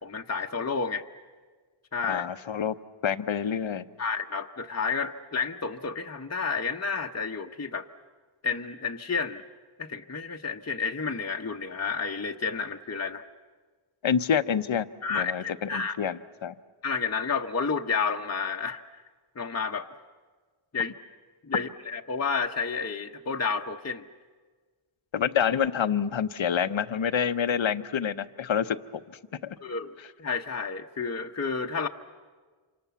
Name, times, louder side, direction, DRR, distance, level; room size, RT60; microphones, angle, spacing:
voice 1, 0.0-1.0 1.9-2.3 4.0-7.9 8.4-9.4 9.8-13.2 15.0-16.0 16.8-19.0 19.4-19.9 20.7-20.9 21.4-24.1 29.6-31.9, left 5 dB, 30° left, 3 dB, 0.9 m, -30 dB
voice 2, 2.1-2.7 3.0-3.8 14.0-16.5 25.1-28.8 29.4-29.6, left 8 dB, 70° left, 12 dB, 0.9 m, -27 dB
28.0 x 26.0 x 6.9 m, 1.4 s
wide cardioid pair, 55°, 49 cm